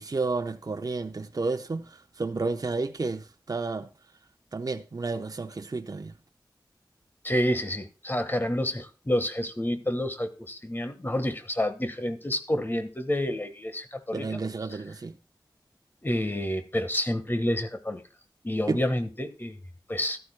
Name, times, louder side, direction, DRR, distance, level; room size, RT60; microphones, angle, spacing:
voice 1, 0.0-3.9 4.5-6.1 14.1-15.1 18.7-18.8, right 3 dB, 50° right, 0.8 m, -31 dB
voice 2, 7.2-14.3 16.0-18.0 18.4-19.6 19.9-20.2, left 1 dB, 25° left, 1.4 m, -29 dB
14.5 x 12.0 x 2.2 m
cardioid pair, 45°, 8 cm